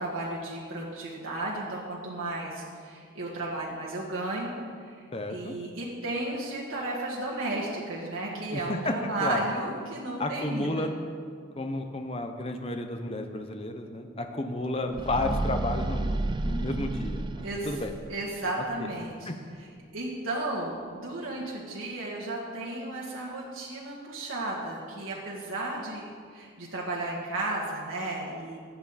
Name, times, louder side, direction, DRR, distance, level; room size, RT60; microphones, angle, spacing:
voice 1, 0.0-4.5 4.8-5.0 5.3-10.9 17.4-17.7 18.1-19.3 19.9-26.0 26.3-28.6, right 2 dB, 85° right, -4 dB, 1.7 m, -34 dB
voice 2, 5.1-5.5 8.5-8.9 9.2-9.4 10.2-10.9 11.6-17.9 18.8-18.9 19.3-19.4, left 1 dB, 30° left, 5 dB, 0.8 m, -32 dB
sound 1, 14.9-18.2, right 2 dB, 20° right, 0.3 m, -31 dB
15.5 x 9.3 x 4.2 m, 2.1 s
head